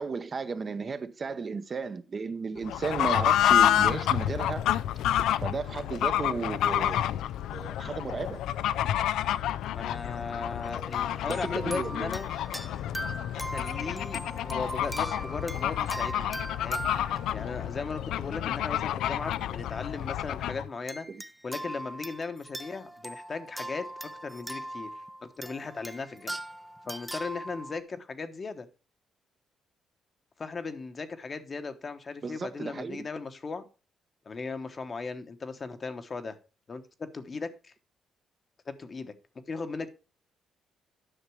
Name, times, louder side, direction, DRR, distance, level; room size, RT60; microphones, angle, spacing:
voice 1, 0.0-4.7 5.4-7.0 7.5-8.5 11.3-12.1 21.1-21.2 32.2-33.1, right 4 dB, 40° right, 0.7 m, -34 dB
Fowl / Bird, 2.6-20.7, left 11 dB, 85° left, 0.3 m, -29 dB
voice 2, 9.7-12.3 13.3-16.3 16.6-16.8 17.3-21.1 21.4-24.9 25.2-26.4 26.9-28.7 30.4-33.7 34.2-36.4 36.7-37.7 38.7-39.1 39.5-39.9, left 4 dB, 35° left, 1.0 m, -37 dB
sound 1, 10.6-18.5 19.2-19.3 20.9-27.8, right 1 dB, 5° right, 0.6 m, -40 dB
10.0 x 6.0 x 4.6 m
cardioid pair, 90°, 0 cm